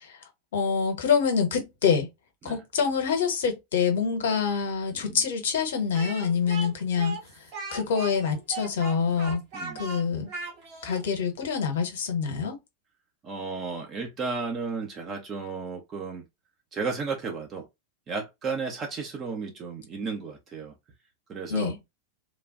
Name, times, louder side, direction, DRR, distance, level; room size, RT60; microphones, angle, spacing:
voice 1, 0.5-2.1 2.4-7.2 7.7-9.4 9.8-10.3 10.8-12.6 21.5-21.8, left 6 dB, 60° left, 1.0 m, -26 dB
Speech, 5.9-11.0, right 3 dB, 45° right, 1.2 m, -38 dB
voice 2, 9.5-9.8 13.2-16.2 16.7-17.7 18.1-20.7 21.3-21.7, right 4 dB, 30° right, 0.7 m, -33 dB
3.2 x 2.4 x 2.4 m
figure-of-eight pair, 90°, 0 cm